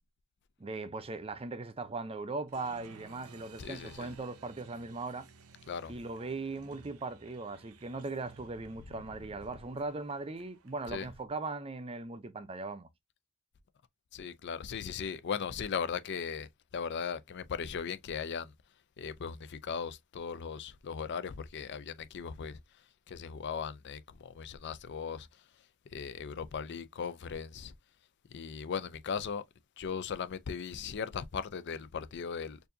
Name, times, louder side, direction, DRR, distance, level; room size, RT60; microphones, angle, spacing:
voice 1, 0.6-5.3 5.9-12.9, right 3 dB, 25° right, 0.5 m, -39 dB
Applause, 2.5-10.9, right 5 dB, 75° right, 0.7 m, -56 dB
voice 2, 3.6-4.1 5.7-5.9 10.9-11.1 14.1-18.5 19.0-22.6 23.1-25.3 25.9-27.7 28.3-29.4 29.8-32.6, left 6 dB, 50° left, 0.4 m, -38 dB
4.5 x 2.6 x 2.6 m
head